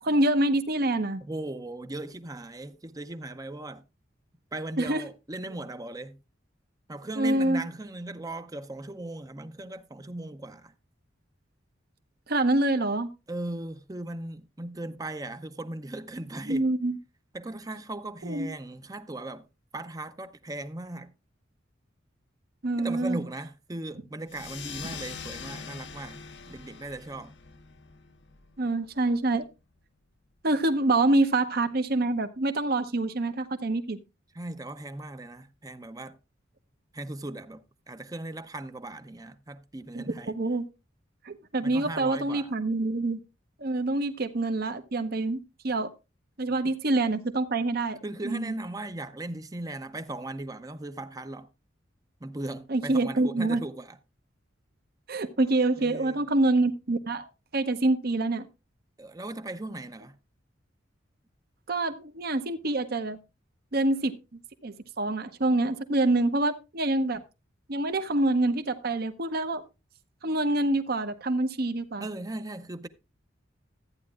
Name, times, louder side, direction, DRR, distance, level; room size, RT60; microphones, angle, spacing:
voice 1, 0.0-1.2 4.8-5.0 7.2-7.6 12.3-13.1 16.5-17.0 18.2-18.5 22.6-23.2 28.6-29.4 30.4-34.0 39.9-40.6 41.2-43.2 43.6-45.9 46.4-48.0 48.2-48.5 52.7-53.6 55.1-57.2 57.5-58.5 61.7-63.2 63.7-64.1 64.6-67.2 67.7-69.6 70.2-72.0, right 2 dB, 55° right, 0.9 m, -26 dB
voice 2, 1.2-3.8 4.5-6.2 6.9-10.7 13.3-16.6 17.3-19.5 19.7-21.1 22.8-26.2 26.5-27.3 34.3-36.2 36.9-40.4 41.6-42.5 46.6-46.7 48.0-51.5 52.2-54.0 55.8-56.2 59.0-60.2 72.0-72.9, right 2 dB, 20° right, 0.6 m, -38 dB
sound 1, 24.3-29.4, left 6 dB, 65° left, 0.8 m, -43 dB
14.0 x 9.4 x 2.4 m
head